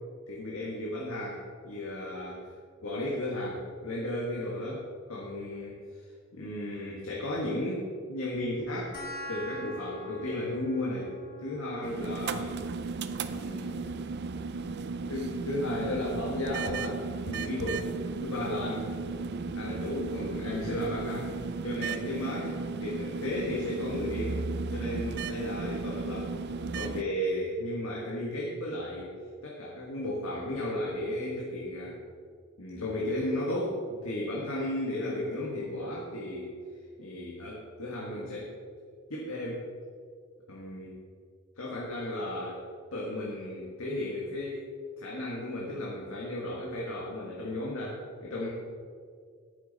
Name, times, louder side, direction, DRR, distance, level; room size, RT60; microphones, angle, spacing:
voice 1, 0.3-2.5 2.8-8.9 9.3-12.6 13.2-13.9 14.8-17.8 18.2-18.9 19.5-21.3 21.6-24.4 24.7-26.3 26.7-29.1 29.4-32.0 32.6-36.5 37.0-38.5 39.1-39.7 40.5-41.0 41.6-42.6 42.9-44.6 45.0-48.5, left 1 dB, 80° left, -4 dB, 1.6 m, -34 dB
sound 1, 8.9-19.9, equal, 45° left, 1.4 m, -48 dB
sound 2, 11.8-27.0, right 4 dB, 50° right, 0.5 m, -35 dB
10.5 x 9.5 x 4.1 m, 2.1 s
head